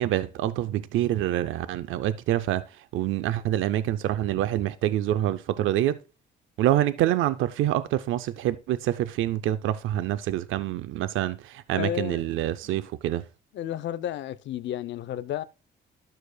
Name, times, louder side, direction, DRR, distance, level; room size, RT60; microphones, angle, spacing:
voice 1, 0.0-6.0 6.6-13.2, right 13 dB, 85° right, 0.5 m, -26 dB
voice 2, 11.7-12.2 12.6-12.8 13.5-15.4, left 11 dB, 65° left, 0.6 m, -32 dB
12.0 x 6.5 x 2.2 m
cardioid pair, 90°, 20 cm